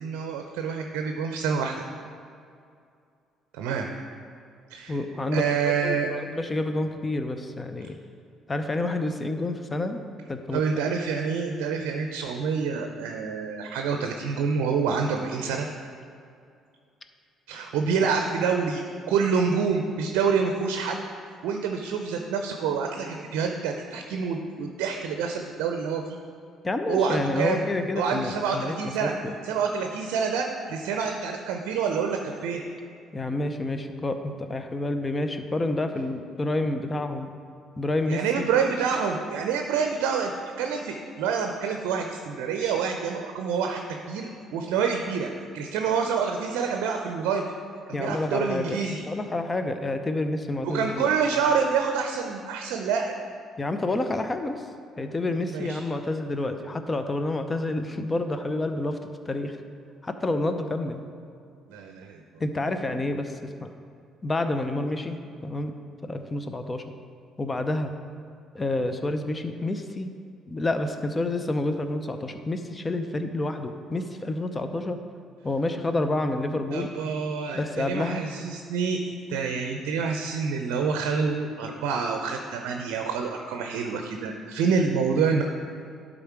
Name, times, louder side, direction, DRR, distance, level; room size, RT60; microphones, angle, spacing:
voice 1, 0.0-1.8 3.5-3.9 4.7-5.0 5.3-6.1 10.5-15.7 17.5-18.8 19.1-21.0 21.4-26.2 26.9-27.6 28.0-29.1 29.4-32.6 38.1-40.3 40.6-47.4 47.9-49.0 50.6-53.1 55.5-55.8 61.7-62.2 76.7-79.0 79.3-85.4, right 6 dB, 70° right, 4 dB, 0.5 m, -27 dB
voice 2, 4.9-8.0 8.5-10.0 10.3-10.9 18.0-18.1 26.6-28.8 29.0-29.3 33.1-37.3 37.8-38.5 47.9-48.8 49.0-51.1 53.6-54.6 55.0-59.0 59.3-59.6 60.0-61.0 62.4-63.7 64.2-65.2 65.4-65.7 66.0-66.8 67.4-67.9 68.5-70.1 70.5-75.0 75.4-76.9 77.5-78.2, left 2 dB, 25° left, 7 dB, 0.7 m, -29 dB
11.5 x 3.9 x 4.6 m, 2.4 s
hypercardioid pair, 50°, 0 cm